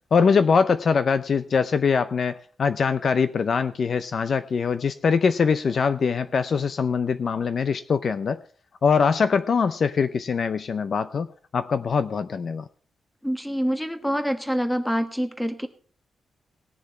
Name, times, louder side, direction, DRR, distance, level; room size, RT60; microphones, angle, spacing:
voice 1, 0.1-8.4 8.8-11.3 11.5-12.6, left 5 dB, 45° left, 11 dB, 0.5 m, -22 dB
voice 2, 13.2-15.7, equal, 5° left, 8 dB, 1.3 m, -26 dB
19.0 x 7.0 x 4.3 m, 0.42 s
wide cardioid pair, 150°, 0 cm